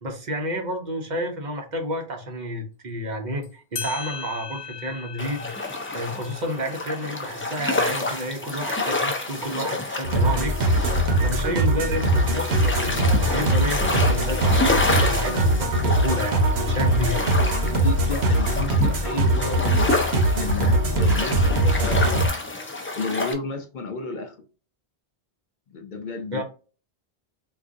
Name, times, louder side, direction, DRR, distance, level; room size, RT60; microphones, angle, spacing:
voice 1, 0.0-11.0 11.2-17.2 26.3-26.4, equal, 50° right, 0.8 m, -30 dB
sound 1, 3.4-3.5 3.8-8.8, left 6 dB, 85° left, 0.9 m, -39 dB
sound 2, 5.2-23.3, left 2 dB, 20° left, 0.3 m, -28 dB
sound 3, 10.0-22.3, right 1 dB, 90° right, 1.1 m, -22 dB
voice 2, 17.7-22.3 22.9-24.4 25.7-26.4, left 3 dB, 60° left, 0.6 m, -32 dB
3.7 x 2.5 x 2.5 m
omnidirectional pair, 1.0 m